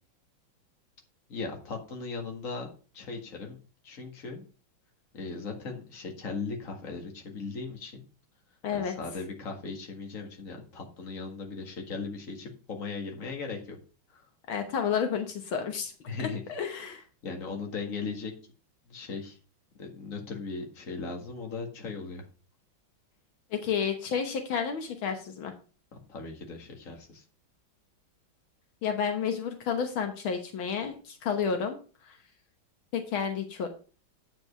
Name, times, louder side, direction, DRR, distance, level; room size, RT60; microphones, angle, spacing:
voice 1, 1.3-2.7 2.9-3.6 3.8-4.4 5.1-8.0 8.7-13.8 14.1-14.3 16.1-16.4 17.2-18.3 18.9-19.4 19.8-22.2 25.9-27.2, left 4 dB, 40° left, 2 dB, 2.1 m, -38 dB
voice 2, 8.6-8.9 14.5-15.9 16.2-17.0 23.5-25.5 28.8-31.8 32.0-32.2 32.9-33.7, left 7 dB, 75° left, 6 dB, 1.9 m, -31 dB
9.0 x 5.3 x 5.4 m, 0.36 s
omnidirectional pair, 2.2 m